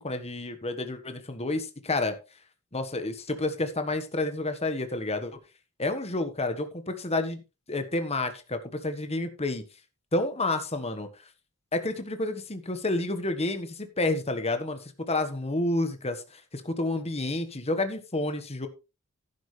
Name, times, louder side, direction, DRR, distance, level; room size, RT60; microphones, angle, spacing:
voice 1, 0.0-2.2 2.7-5.4 5.8-7.4 7.7-9.6 10.1-11.1 11.7-18.7, left 2 dB, 30° left, 9 dB, 1.5 m, -30 dB
11.5 x 10.5 x 3.4 m, 0.29 s
head